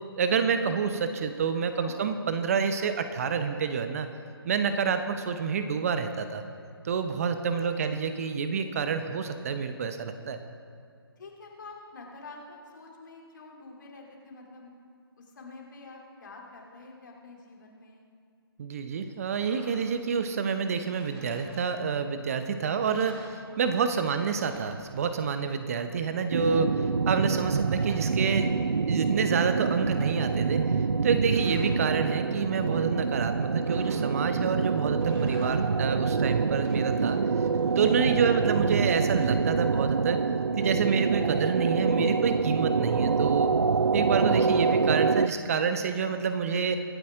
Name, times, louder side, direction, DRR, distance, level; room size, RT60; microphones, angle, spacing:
voice 1, 0.2-4.1 4.4-6.4 6.8-10.4 18.6-28.5 28.9-30.7 31.0-37.2 37.8-40.2 40.6-43.5 43.9-46.8, right 6 dB, 35° right, 9 dB, 0.8 m, -28 dB
voice 2, 1.7-2.0 7.6-7.7 11.2-14.7 15.2-18.0 27.5-27.7 32.6-33.0 38.1-38.3, left 3 dB, 50° left, -1 dB, 3.0 m, -48 dB
sound 1, 19.2-20.1 20.8-22.1 22.4-22.5 22.8-23.9 24.1-25.4 27.1-28.9 29.3-30.2 30.9-31.8 33.6-34.4 34.9-35.9 36.4-38.2, right 1 dB, 20° right, 2.9 m, -52 dB
sound 2, 26.3-45.3, right 5 dB, 75° right, 0.5 m, -26 dB
24.0 x 8.5 x 3.7 m, 2.4 s
figure-of-eight pair, 140°, 13 cm